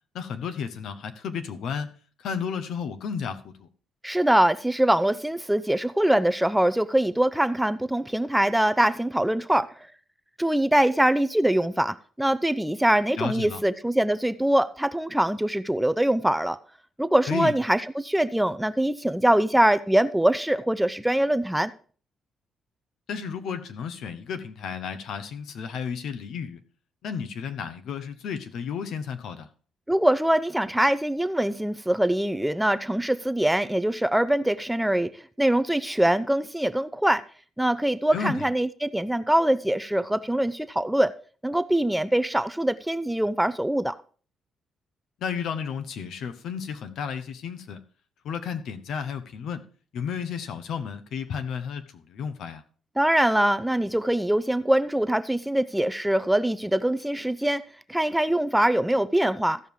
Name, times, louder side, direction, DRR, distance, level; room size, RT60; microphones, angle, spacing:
voice 1, 0.1-1.9 2.2-3.7 13.2-13.6 17.3-17.5 23.1-26.6 27.0-29.5 38.1-38.5 45.2-47.8 48.2-49.6 49.9-52.6, left 6 dB, 75° left, 1.1 m, -32 dB
voice 2, 4.0-9.7 10.4-16.6 17.0-21.7 29.9-35.1 35.4-37.2 37.6-41.1 41.4-43.9 53.0-57.6 57.9-59.6, right 1 dB, 5° right, 0.5 m, -23 dB
14.5 x 5.4 x 4.7 m
cardioid pair, 90°, 0 cm